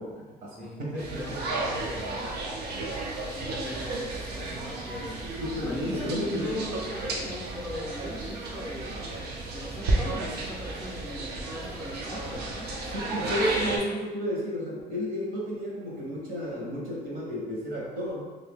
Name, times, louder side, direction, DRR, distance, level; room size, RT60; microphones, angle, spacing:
voice 1, 0.0-1.4 5.4-6.6 12.9-18.3, equal, 60° right, -3 dB, 1.1 m, -32 dB
voice 2, 0.5-2.4 2.9-5.3 5.6-9.1 9.5-12.7, left 1 dB, 5° left, -5 dB, 0.5 m, -39 dB
sound 1, 1.0-13.8, right 2 dB, 75° right, 0.7 m, -33 dB
2.7 x 2.6 x 3.6 m, 1.2 s
cardioid pair, 110°, 17 cm